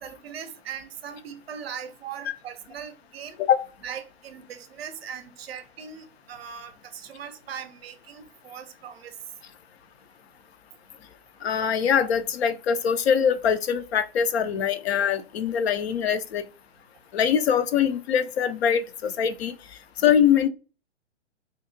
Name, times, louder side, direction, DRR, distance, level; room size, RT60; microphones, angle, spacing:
voice 1, 0.0-3.4 3.8-9.2, right 8 dB, 60° right, 0.5 m, -39 dB
voice 2, 11.4-16.4 17.1-19.5 20.0-20.5, left 8 dB, 60° left, 0.5 m, -23 dB
2.7 x 2.0 x 2.5 m
figure-of-eight pair, 120°, 35 cm